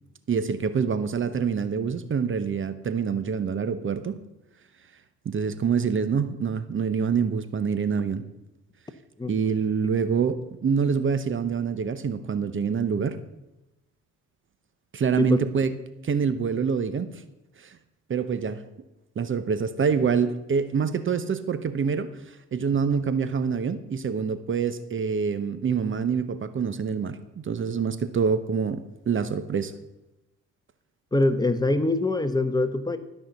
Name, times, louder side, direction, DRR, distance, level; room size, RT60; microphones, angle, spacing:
voice 1, 0.3-4.2 5.2-8.3 9.3-13.2 14.9-15.7 16.0-17.1 17.6-17.8 18.1-18.6 19.2-22.1 22.5-27.2 27.4-29.7, right 6 dB, 40° right, 12 dB, 0.9 m, -26 dB
voice 2, 31.1-33.0, left 2 dB, 15° left, 10 dB, 1.0 m, -23 dB
13.0 x 5.7 x 8.1 m, 0.96 s
cardioid pair, 90°, 30 cm